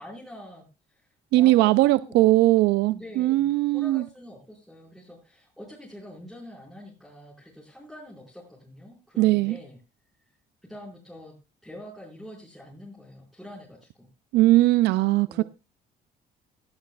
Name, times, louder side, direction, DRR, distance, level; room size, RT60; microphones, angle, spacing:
voice 1, 0.0-2.2 2.9-9.8 10.6-11.3 11.6-14.1 15.3-15.4, left 1 dB, ahead, 5.0 m, -45 dB
voice 2, 1.3-4.0 9.2-9.6 14.3-15.4, right 17 dB, 80° right, 0.4 m, -20 dB
17.0 x 11.0 x 2.3 m
cardioid pair, 110°, 17 cm